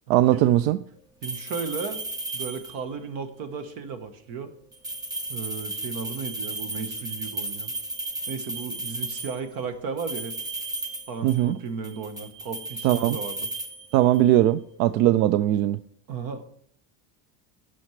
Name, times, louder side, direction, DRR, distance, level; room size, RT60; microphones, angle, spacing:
voice 1, 0.1-0.8 11.2-11.6 12.8-13.2 13.9-15.8, right 13 dB, 80° right, 0.5 m, -20 dB
sound 1, 1.2-3.0 4.7-9.4 10.0-11.5 11.8-14.3, right 2 dB, 10° right, 0.5 m, -34 dB
voice 2, 1.2-2.0 2.3-4.5 5.3-7.7 8.3-10.3 11.1-13.5 16.1-16.6, right 5 dB, 55° right, 1.2 m, -35 dB
16.0 x 6.3 x 3.2 m
cardioid pair, 165°, 42 cm